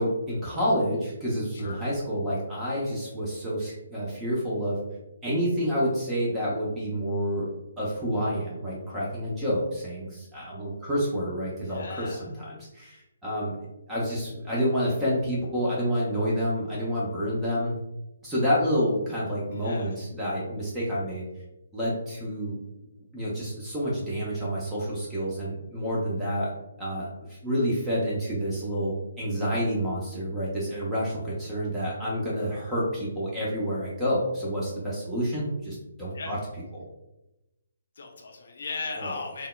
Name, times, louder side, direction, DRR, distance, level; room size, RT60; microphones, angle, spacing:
voice 1, 0.0-4.8 5.2-7.5 7.8-13.6 13.9-17.8 18.2-21.2 21.7-22.6 23.1-26.5 26.8-36.4 36.7-36.8 39.0-39.2, equal, 10° right, -7 dB, 0.6 m, -28 dB
voice 2, 11.6-12.3 19.5-19.9 36.1-36.3 38.0-39.5, left 4 dB, 50° left, 1 dB, 0.6 m, -37 dB
3.5 x 2.0 x 2.2 m, 0.95 s
figure-of-eight pair, 135°, 0 cm